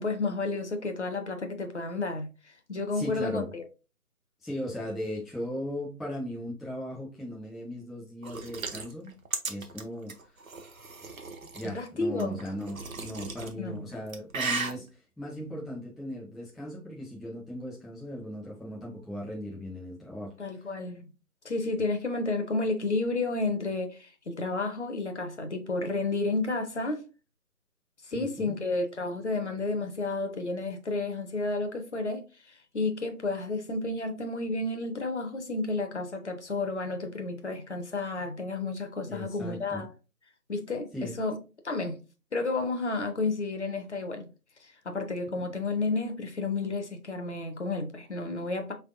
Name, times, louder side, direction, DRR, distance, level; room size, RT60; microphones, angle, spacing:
voice 1, 0.0-2.3 2.7-3.6 11.7-12.4 13.6-13.8 20.4-21.0 21.4-27.0 28.1-39.9 40.5-42.0 42.3-44.3 44.6-48.7, left 3 dB, 50° left, 0.7 m, -31 dB
voice 2, 2.9-3.5 4.4-9.1 9.5-10.1 11.5-14.9 15.2-20.3 28.1-28.6 39.1-39.8 40.9-41.2 45.4-45.5, equal, ahead, 0.4 m, -37 dB
sound 1, 8.2-11.7 12.2-13.5 13.9-14.7, right 4 dB, 65° right, 0.8 m, -35 dB
4.0 x 3.3 x 2.5 m
figure-of-eight pair, 150°, 45 cm